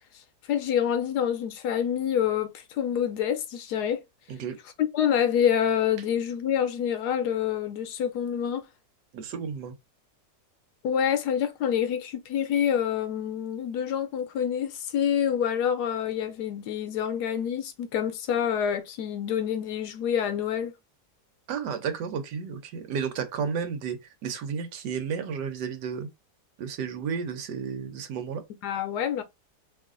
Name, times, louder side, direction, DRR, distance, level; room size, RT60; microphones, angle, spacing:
voice 1, 0.5-4.0 4.9-8.7 10.8-20.7 28.6-29.2, left 9 dB, 75° left, 1.1 m, -27 dB
voice 2, 9.1-9.7 21.5-24.0 24.2-26.1 26.6-28.4, right 6 dB, 75° right, 1.3 m, -32 dB
3.0 x 2.5 x 3.6 m
omnidirectional pair, 1.9 m